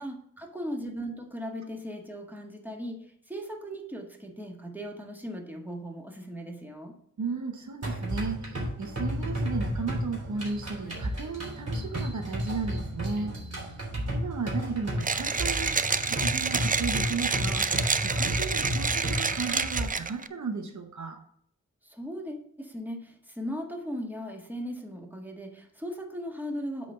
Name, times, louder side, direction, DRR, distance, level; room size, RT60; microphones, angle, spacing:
voice 1, 0.0-6.9 21.8-26.9, equal, 5° right, 2 dB, 1.8 m, -38 dB
voice 2, 7.2-13.4 13.8-13.9 14.1-15.8 16.1-21.2, right 4 dB, 75° right, 6 dB, 0.9 m, -35 dB
sound 1, 7.8-19.8, equal, 55° right, 3.4 m, -32 dB
Mechanisms, 15.0-20.3, right 4 dB, 30° right, 0.4 m, -28 dB
8.2 x 4.1 x 6.7 m, 0.65 s
wide cardioid pair, 60°, 30 cm